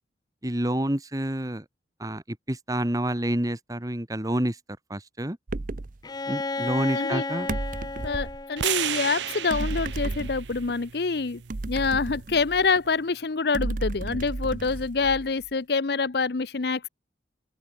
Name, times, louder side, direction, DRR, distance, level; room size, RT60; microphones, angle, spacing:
voice 1, 0.4-1.6 2.0-4.6 4.9-5.4 6.3-7.5, right 1 dB, 20° right, 1.7 m, -28 dB
sound 1, 5.5-6.0 7.5-8.4 9.5-10.7 11.5-12.9 13.5-15.4, right 2 dB, 45° right, 0.7 m, -32 dB
Bowed string instrument, 6.0-9.8, left 3 dB, 20° left, 0.5 m, -33 dB
voice 2, 6.9-7.3 8.0-11.4 11.7-16.9, left 4 dB, 60° left, 0.7 m, -26 dB
sound 2, 8.6-12.8, right 11 dB, 80° right, 0.7 m, -34 dB
open air
head